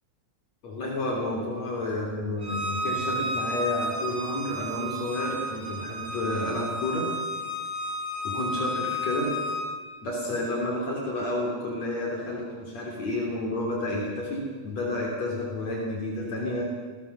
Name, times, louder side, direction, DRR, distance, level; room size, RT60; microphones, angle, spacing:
voice 1, 0.6-7.1 8.2-9.3 10.0-16.7, left 1 dB, 60° left, -1 dB, 4.7 m, -30 dB
Bowed string instrument, 2.4-9.6, equal, 5° right, 4.0 m, -32 dB
27.0 x 20.0 x 6.9 m, 1.5 s
omnidirectional pair, 3.4 m